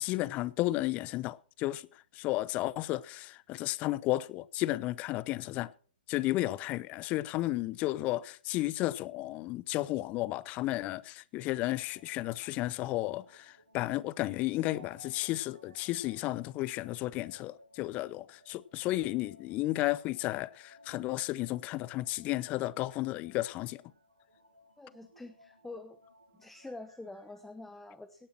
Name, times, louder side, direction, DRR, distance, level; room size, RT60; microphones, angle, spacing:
voice 1, 0.0-1.9 2.1-5.7 6.1-23.8, left 17 dB, 25° left, 0.6 m, -33 dB
sound 1, 11.6-27.4, left 1 dB, 85° right, 2.2 m, -61 dB
voice 2, 24.8-26.0 26.4-28.3, left 2 dB, 5° left, 0.9 m, -46 dB
18.0 x 10.5 x 4.4 m
figure-of-eight pair, 120°, 5 cm